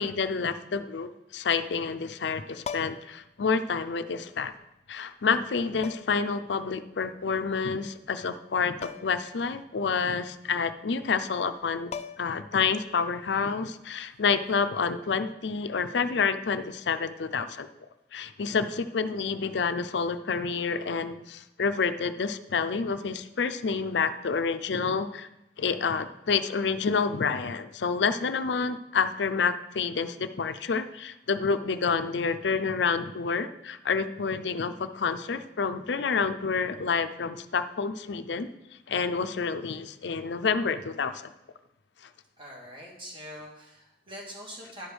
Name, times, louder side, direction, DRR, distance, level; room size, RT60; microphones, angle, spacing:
voice 1, 0.0-4.5 4.9-11.9 12.2-17.7 18.1-25.3 25.6-38.5 38.9-41.3, left 5 dB, 85° left, 11 dB, 0.5 m, -28 dB
sound 1, 2.6-3.2 4.5-4.6 5.8-6.3 8.8-9.2 9.6-9.7 11.5-11.6 11.9-12.5 14.5-14.7, left 6 dB, 35° left, 0.3 m, -39 dB
voice 2, 42.4-44.9, equal, 30° right, -2 dB, 2.4 m, -43 dB
10.5 x 5.1 x 6.2 m, 0.87 s
head